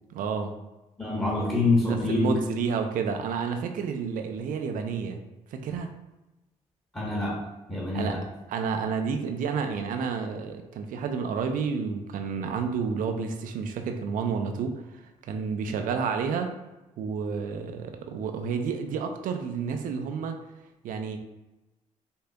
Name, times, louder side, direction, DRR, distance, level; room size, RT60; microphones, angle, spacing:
voice 1, 0.1-0.5 1.9-5.2 5.5-5.9 7.9-8.2 8.5-14.8 15.3-16.5 17.0-20.4 20.8-21.2, right 6 dB, 75° right, 5 dB, 0.5 m, -30 dB
voice 2, 1.0-2.4 6.9-7.4 7.7-8.2, left 2 dB, 15° left, -4 dB, 1.2 m, -25 dB
5.2 x 2.7 x 2.3 m, 1.0 s
supercardioid pair, 60°, 14 cm